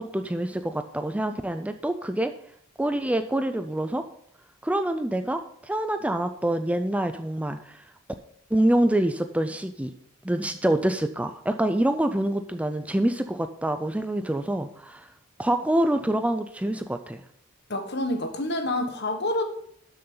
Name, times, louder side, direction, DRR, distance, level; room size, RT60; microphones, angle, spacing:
voice 1, 0.0-2.3 2.8-4.0 4.6-7.8 8.5-9.9 10.2-15.1 15.4-17.2, right 1 dB, 5° right, 8 dB, 0.4 m, -26 dB
voice 2, 17.7-19.4, left 1 dB, 55° left, 6 dB, 1.4 m, -27 dB
12.5 x 6.6 x 3.9 m, 0.66 s
head